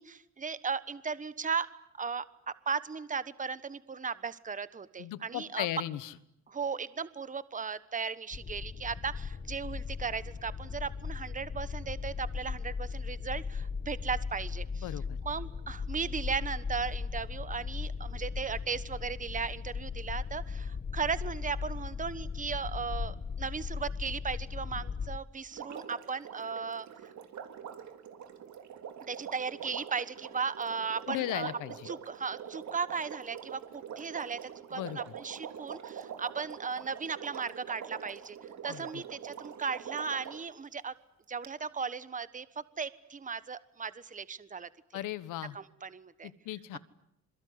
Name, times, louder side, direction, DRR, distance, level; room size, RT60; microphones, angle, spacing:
voice 1, 0.0-1.7 2.0-5.7 6.5-14.9 15.2-27.1 29.1-31.5 31.9-38.4 38.6-40.9 41.3-42.5 42.8-44.7 45.5-46.3, right 5 dB, 25° right, 15 dB, 1.3 m, -36 dB
voice 2, 5.0-6.1 14.8-15.2 31.1-31.9 34.7-35.1 38.7-39.0 44.9-45.6 46.2-46.8, left 14 dB, 90° left, 16 dB, 1.4 m, -37 dB
sound 1, 8.3-25.2, left 5 dB, 35° left, 1.5 m, -37 dB
Water, 25.5-40.5 41.4-41.5, right 8 dB, 65° right, 3.3 m, -44 dB
27.0 x 22.5 x 9.7 m, 0.79 s
cardioid pair, 90°, 30 cm